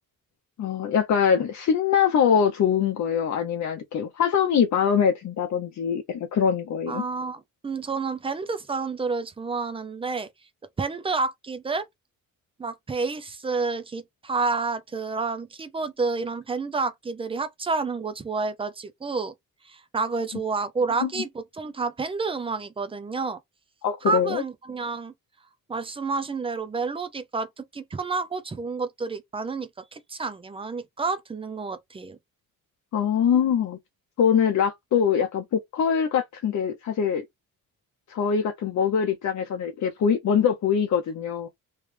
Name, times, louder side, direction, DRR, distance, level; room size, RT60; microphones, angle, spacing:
voice 1, 0.6-7.0 21.0-21.1 23.8-24.4 32.9-33.8 34.2-37.2 38.1-41.5, left 7 dB, 55° left, 0.8 m, -23 dB
voice 2, 6.9-10.3 10.8-11.9 12.6-19.3 19.6-23.4 24.1-25.1 25.7-32.2, right 4 dB, 15° right, 0.5 m, -29 dB
3.2 x 3.1 x 3.3 m
cardioid pair, 170°, 34 cm